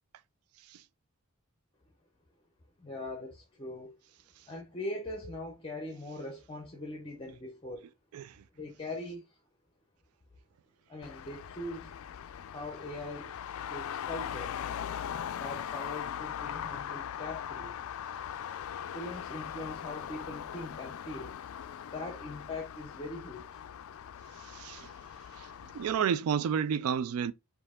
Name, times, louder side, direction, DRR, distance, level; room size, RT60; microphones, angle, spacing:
voice 1, 2.8-3.9 4.5-7.8 8.5-9.4 10.9-11.9 12.5-14.6 15.1-17.8 18.9-21.3 21.9-23.6, left 2 dB, 25° left, 0.7 m, -41 dB
Traffic noise roadway noise, 11.0-26.0, left 9 dB, 75° left, 0.3 m, -40 dB
voice 2, 24.4-24.9 25.4-25.5 25.7-27.3, right 7 dB, 90° right, 0.3 m, -31 dB
4.4 x 2.7 x 3.5 m
head